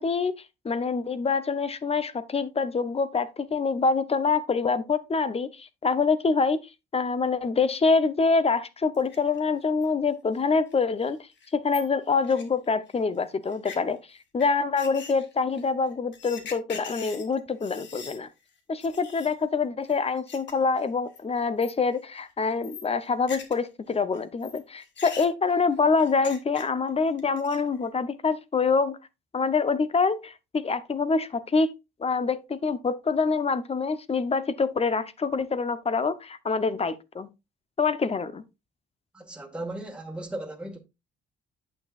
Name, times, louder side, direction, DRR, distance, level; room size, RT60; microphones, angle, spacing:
voice 1, 0.0-6.6 6.9-11.2 11.5-18.3 18.7-29.0 29.3-31.7 32.0-37.3 37.8-38.4, left 4 dB, 30° left, 0.8 m, -25 dB
sound 1, 8.9-9.4 9.8-9.9 10.4-10.5 10.7-10.8 11.1-11.2 11.4-13.0 13.5-13.8 14.4-14.5 14.8-18.2 18.5-18.6 18.8-19.3 19.9-20.5 20.8-21.2 21.6-22.0 22.2-23.7 23.9-26.9 27.2-27.8, left 6 dB, 65° left, 1.8 m, -43 dB
voice 2, 39.1-40.8, right 1 dB, 5° right, 1.7 m, -36 dB
8.8 x 6.9 x 2.5 m
cardioid pair, 90°, 20 cm